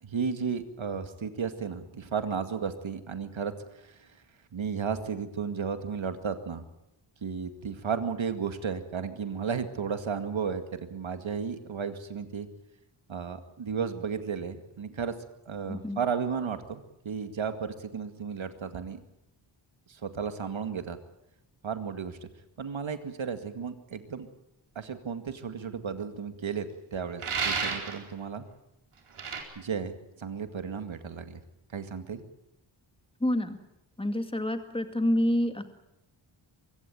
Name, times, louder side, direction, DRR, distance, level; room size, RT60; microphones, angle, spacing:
voice 1, 0.0-4.1 4.5-6.6 7.2-12.5 13.1-15.1 15.5-19.0 19.9-21.0 21.6-22.2 22.6-24.3 24.8-28.4 29.6-31.4 31.7-32.2, right 6 dB, 70° right, 9 dB, 2.2 m, -34 dB
voice 2, 15.7-16.0 33.2-33.6 34.0-35.6, left 1 dB, 10° left, 8 dB, 2.2 m, -27 dB
sound 1, 27.2-28.0 29.2-29.4, right 5 dB, 85° right, 4.2 m, -30 dB
24.0 x 16.0 x 9.1 m, 0.88 s
cardioid pair, 70°, 49 cm